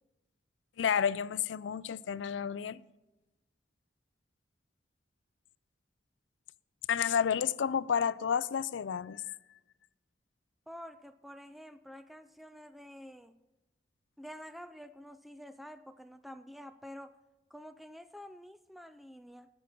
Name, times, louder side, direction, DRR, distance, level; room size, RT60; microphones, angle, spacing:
voice 1, 0.8-2.8 6.9-9.4, left 7 dB, 80° left, 0.4 m, -31 dB
voice 2, 10.7-13.4 14.2-17.2 17.5-19.5, equal, ahead, 0.3 m, -49 dB
17.5 x 6.4 x 4.5 m
head